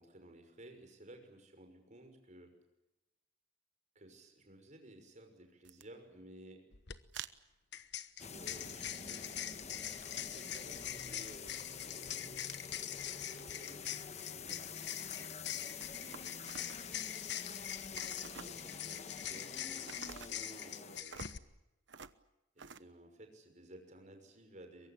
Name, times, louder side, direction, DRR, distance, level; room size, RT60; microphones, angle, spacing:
voice 1, 0.0-2.5 3.9-6.6 8.2-9.2 9.6-15.3 16.0-16.8 17.9-21.3 22.5-24.9, right 1 dB, 40° right, 5 dB, 6.1 m, -56 dB
sound 1, 5.6-5.8 7.1-7.3 8.2-9.2 9.5-10.8 11.9-12.7 13.1-14.2 15.5-17.0 17.8-18.9 19.7-20.4 21.1-21.4 21.9-22.2 22.6-22.8, right 7 dB, 75° right, 1.0 m, -51 dB
sound 2, 6.7-7.0 7.7-21.4, left 11 dB, 65° left, 1.1 m, -43 dB
sound 3, 8.2-21.0, left 5 dB, 35° left, 1.3 m, -48 dB
23.0 x 23.0 x 8.7 m, 0.96 s
head